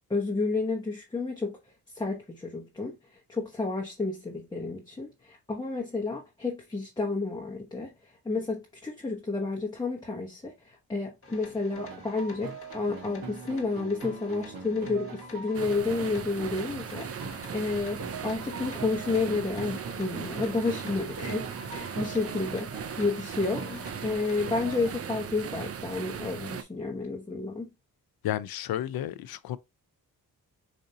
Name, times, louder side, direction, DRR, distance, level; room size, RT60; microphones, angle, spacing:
voice 1, 0.1-1.6 1.9-27.7, left 3 dB, 10° left, 0.8 m, -31 dB
sound 1, 11.2-24.9, left 4 dB, 35° left, 1.3 m, -50 dB
sound 2, 11.7-25.0, right 4 dB, 70° right, 1.2 m, -42 dB
sound 3, 15.5-26.6, right 7 dB, 40° right, 0.5 m, -38 dB
voice 2, 28.2-29.6, left 12 dB, 75° left, 0.5 m, -32 dB
4.8 x 2.6 x 2.7 m
cardioid pair, 95°, 37 cm